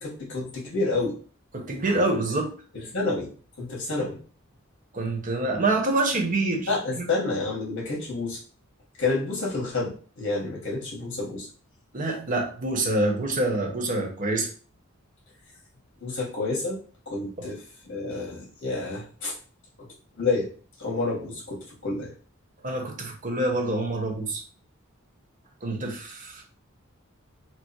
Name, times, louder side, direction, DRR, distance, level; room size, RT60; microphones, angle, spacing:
voice 1, 0.0-1.1 2.7-3.3 3.6-4.2 6.7-8.4 9.0-11.5 16.0-16.8 17.1-17.6 17.8-19.3 19.8-19.9 20.2-20.5 20.8-22.1, left 3 dB, 65° left, -3 dB, 2.0 m, -29 dB
voice 2, 1.5-2.5 4.9-6.7 7.0-7.1 11.9-14.5 17.4-17.5 22.6-24.4 25.6-26.4, right 2 dB, 40° right, 2 dB, 1.0 m, -26 dB
4.6 x 2.0 x 4.4 m, 0.41 s
head